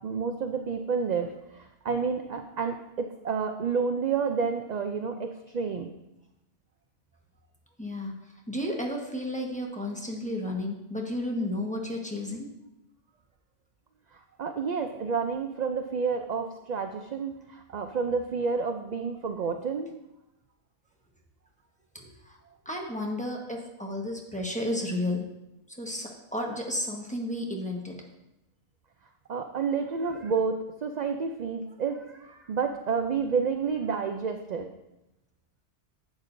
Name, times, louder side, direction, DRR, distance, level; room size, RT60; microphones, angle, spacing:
voice 1, 0.0-6.0 14.1-19.9 29.3-30.5 30.8-34.7, right 5 dB, 55° right, 6 dB, 0.5 m, -30 dB
voice 2, 7.8-8.1 8.5-12.5 21.9-22.4 22.6-25.3 25.8-28.0 30.1-30.3, left 1 dB, 5° left, -1 dB, 1.1 m, -32 dB
11.0 x 8.2 x 2.6 m, 0.92 s
omnidirectional pair, 1.2 m